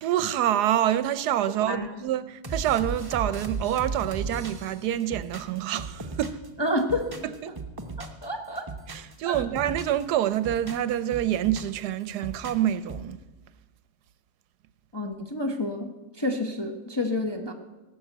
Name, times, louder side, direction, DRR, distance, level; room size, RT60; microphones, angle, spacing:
voice 1, 0.0-6.4 7.2-7.5 8.9-13.2, right 11 dB, 75° right, 1.1 m, -27 dB
sound 1, 2.4-6.5 6.8-8.2 8.6-10.0 10.3-11.8 12.1-13.1, right 3 dB, 20° right, 0.6 m, -36 dB
voice 2, 6.6-7.1 8.0-8.7 9.3-9.4 14.9-17.5, left 1 dB, 20° left, 0.7 m, -29 dB
17.0 x 6.3 x 7.9 m
omnidirectional pair, 1.8 m